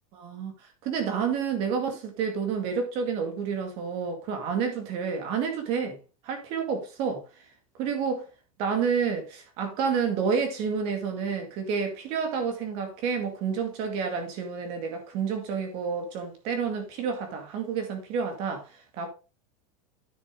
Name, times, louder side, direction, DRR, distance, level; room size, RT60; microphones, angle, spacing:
voice 1, 0.1-0.5 0.8-6.0 6.2-7.2 7.8-8.3 8.6-18.7 18.9-19.1, right 6 dB, 35° right, 2.1 m, -29 dB
9.8 x 6.8 x 3.7 m
supercardioid pair, 180°, 18 cm